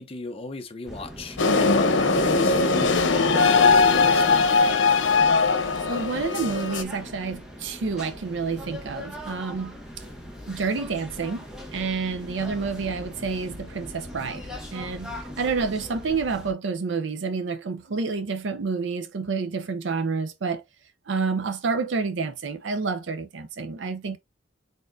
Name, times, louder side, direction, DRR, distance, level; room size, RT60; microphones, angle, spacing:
voice 1, 0.0-5.0, left 3 dB, 30° left, 0.7 m, -36 dB
sound 1, 0.8-16.5, equal, 5° right, 1.0 m, -40 dB
sound 2, 1.4-6.8, left 4 dB, 85° left, 0.8 m, -20 dB
voice 2, 5.9-9.8 10.5-11.4 11.7-20.6 21.1-24.2, right 4 dB, 75° right, 0.5 m, -29 dB
4.2 x 3.6 x 2.6 m
head